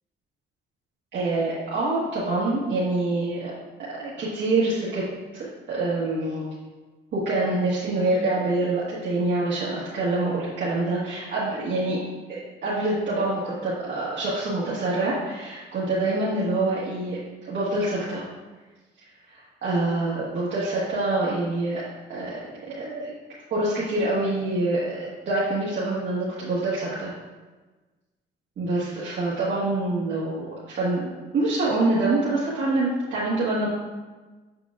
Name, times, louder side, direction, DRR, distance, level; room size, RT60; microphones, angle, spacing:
voice 1, 1.1-3.5 4.0-5.0 5.3-6.5 7.1-12.0 12.3-17.2 17.5-18.2 19.3-21.8 22.1-22.4 22.7-23.1 23.5-27.1 28.6-33.7, right 2 dB, 65° right, -9 dB, 1.5 m, -26 dB
6.9 x 5.7 x 2.4 m, 1.3 s
cardioid pair, 90°, 20 cm